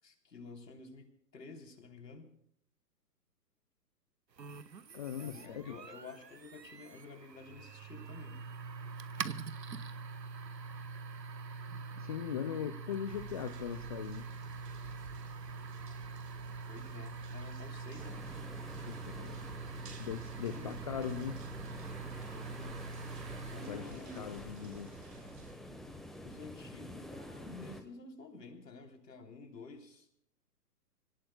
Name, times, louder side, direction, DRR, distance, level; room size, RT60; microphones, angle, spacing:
voice 1, 0.0-2.3 5.2-8.4 16.7-18.2 20.5-20.8 22.3-23.0 23.5-24.4 26.2-30.1, left 3 dB, 80° left, 3 dB, 3.4 m, -50 dB
sound 1, 4.4-23.9, right 4 dB, 85° right, 1.1 m, -44 dB
voice 2, 4.9-5.7 12.0-14.2 18.9-19.4 20.0-21.4 23.7-24.9, left 9 dB, 25° left, 9 dB, 0.5 m, -40 dB
sound 2, 13.0-25.5, right 4 dB, 70° right, 4.8 m, -54 dB
sound 3, 18.0-27.8, left 1 dB, ahead, 1.1 m, -48 dB
26.5 x 18.0 x 2.2 m, 0.69 s
figure-of-eight pair, 125°, 48 cm